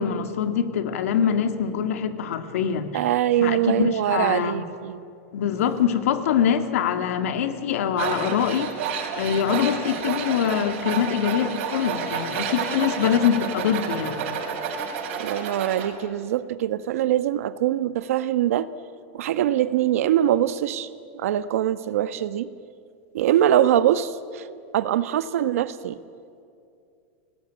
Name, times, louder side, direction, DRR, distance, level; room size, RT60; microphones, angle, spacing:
voice 1, 0.0-3.0 3.4-4.6 5.3-8.7 9.2-14.2, left 8 dB, 85° left, 8 dB, 2.2 m, -24 dB
voice 2, 2.9-5.0 15.2-18.7 19.1-20.9 21.1-22.5 23.1-24.5 24.7-26.0, right 11 dB, 80° right, 13 dB, 1.2 m, -23 dB
Tools, 8.0-15.9, right 6 dB, 60° right, 4.8 m, -30 dB
29.5 x 20.0 x 9.1 m, 2.5 s
supercardioid pair, 165°, 8 cm